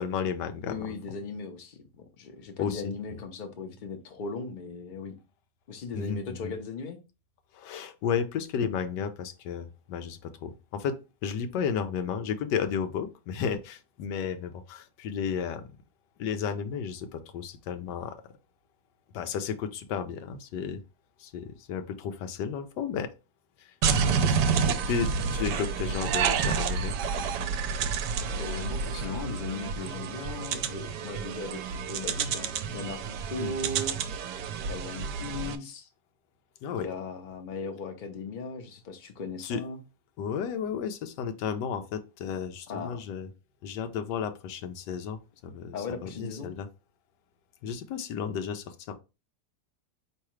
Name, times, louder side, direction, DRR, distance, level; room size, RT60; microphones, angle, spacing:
voice 1, 0.0-0.9 2.6-2.9 5.9-6.5 7.5-10.9 11.2-15.6 16.2-18.2 19.1-20.8 21.2-23.1 23.6-23.7 24.0-26.9 33.4-33.5 36.6-36.9 39.4-39.6 40.2-43.3 43.6-45.8 46.0-46.7 47.6-48.9, left 7 dB, 90° left, 1.2 m, -33 dB
voice 2, 0.7-5.2 5.7-7.0 28.4-31.6 31.9-34.0 34.7-35.9 36.8-39.8 42.7-43.0 45.7-46.5, left 4 dB, 50° left, 0.6 m, -37 dB
sound 1, 23.8-35.6, right 6 dB, 80° right, 1.1 m, -29 dB
4.7 x 3.2 x 3.1 m
omnidirectional pair, 1.8 m